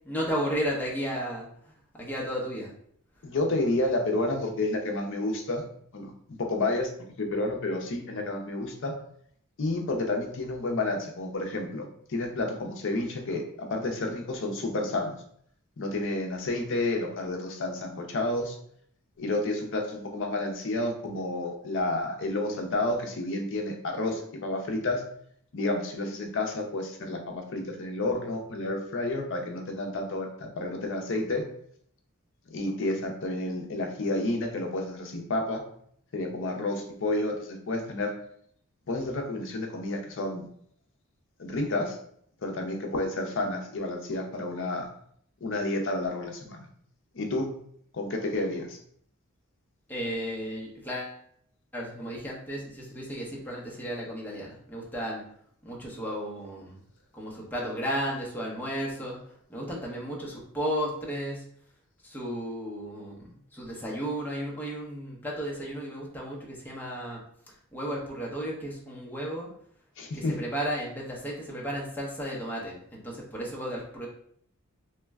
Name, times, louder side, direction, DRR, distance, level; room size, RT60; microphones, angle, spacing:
voice 1, 0.0-1.5 1.9-2.7 49.9-51.2 51.7-55.2 55.6-56.8 57.1-59.2 59.5-61.4 62.0-67.2 67.7-69.5 70.2-72.7 73.0-74.1, equal, 10° left, -4 dB, 0.7 m, -34 dB
voice 2, 3.2-5.6 5.9-8.9 9.6-15.2 15.8-18.6 19.2-25.0 25.5-31.5 32.5-35.6 36.1-38.1 38.9-40.5 41.4-42.0 42.4-44.9 45.4-46.7 47.1-47.5 47.9-48.8 70.0-70.4, left 2 dB, 60° left, 3 dB, 0.6 m, -30 dB
3.1 x 2.1 x 3.4 m, 0.65 s
head